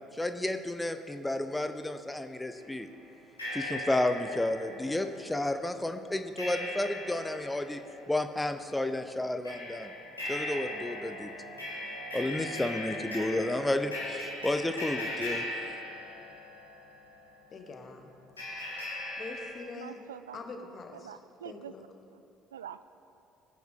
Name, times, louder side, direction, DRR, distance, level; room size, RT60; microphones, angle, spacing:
voice 1, 0.1-2.9 3.5-7.8 8.1-9.9 10.3-11.3 12.1-15.5, left 1 dB, 10° left, 8 dB, 0.7 m, -31 dB
sound 1, 2.6-2.7 3.4-17.4 18.4-19.5, left 1 dB, 85° left, 2.4 m, -39 dB
voice 2, 17.5-18.1 19.2-20.0 20.3-21.1 21.4-21.8, left 3 dB, 40° left, 4 dB, 1.5 m, -44 dB
voice 3, 19.8-21.7 22.1-22.2 22.5-22.8, right 9 dB, 75° right, 14 dB, 0.3 m, -46 dB
21.0 x 9.3 x 3.7 m, 2.7 s
figure-of-eight pair, 55°, 0 cm